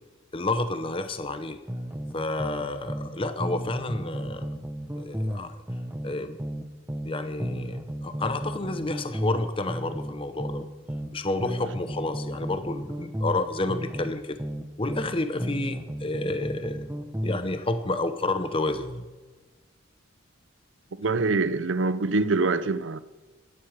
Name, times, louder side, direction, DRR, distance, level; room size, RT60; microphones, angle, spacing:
voice 1, 0.3-1.6 2.1-4.5 4.9-5.5 6.0-6.4 7.0-10.7 11.1-14.4 14.8-16.8 17.2-19.1, left 2 dB, 25° left, 0.7 m, -30 dB
sound 1, 1.7-3.1 3.4-7.1 7.4-11.1 11.4-15.1 15.4-17.5, equal, 10° right, 0.9 m, -33 dB
voice 2, 21.0-23.0, right 3 dB, 65° right, 0.7 m, -24 dB
12.5 x 10.5 x 6.5 m
head